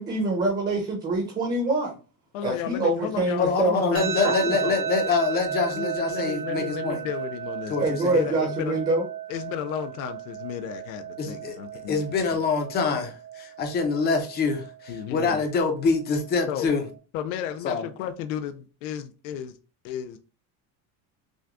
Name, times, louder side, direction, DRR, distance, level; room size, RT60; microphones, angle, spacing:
voice 1, 0.0-2.0 2.4-4.5 7.8-9.0, right 2 dB, 20° right, 0.9 m, -25 dB
voice 2, 2.3-4.8 5.7-8.8 9.3-12.4 14.9-15.4 16.5-16.7 17.1-19.5 19.8-20.2, left 9 dB, 70° left, 0.6 m, -34 dB
voice 3, 3.4-7.0 7.7-8.2 11.2-11.6 11.9-16.8 17.6-17.8, left 4 dB, 25° left, 0.6 m, -25 dB
sound 1, 3.9-16.9, right 9 dB, 60° right, 1.5 m, -34 dB
6.1 x 2.2 x 2.5 m
cardioid pair, 170°, 41 cm